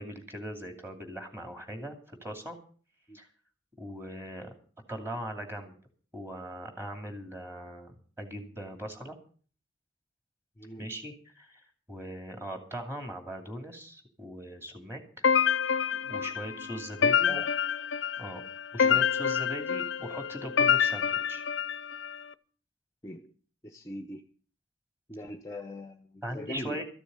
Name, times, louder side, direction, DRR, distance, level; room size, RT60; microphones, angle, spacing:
voice 1, 0.0-2.6 3.1-3.3 3.8-4.5 4.9-5.7 6.1-9.2 10.8-15.3 15.9-17.4 18.2-18.4 18.7-21.4 26.2-26.8, equal, 15° right, 5 dB, 2.6 m, -40 dB
voice 2, 10.6-10.9 17.0-17.5 18.7-19.0 23.0-23.3 23.6-24.2 25.1-26.8, left 1 dB, 15° left, 7 dB, 0.7 m, -41 dB
sound 1, 15.2-22.2, left 7 dB, 80° left, 0.6 m, -27 dB
14.0 x 7.0 x 8.9 m, 0.43 s
head